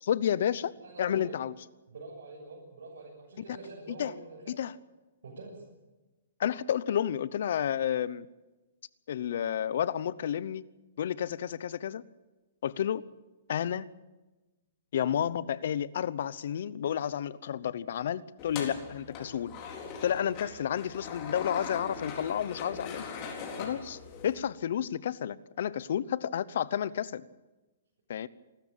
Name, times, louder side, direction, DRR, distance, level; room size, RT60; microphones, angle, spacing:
voice 1, 0.0-1.5 3.5-3.6 3.9-4.1 4.5-4.7 6.4-8.3 9.1-10.7 11.0-12.0 12.6-13.0 13.5-13.9 14.9-19.5 20.0-23.1 23.6-27.2 28.1-28.3, left 9 dB, 60° left, 19 dB, 0.8 m, -31 dB
voice 2, 0.8-1.4 1.9-4.6 5.2-5.6, right 3 dB, 75° right, -4 dB, 7.2 m, -46 dB
sound 1, 18.4-24.4, left 5 dB, 25° left, 4.1 m, -41 dB
27.0 x 13.0 x 9.0 m, 1.1 s
hypercardioid pair, 165°, 0 cm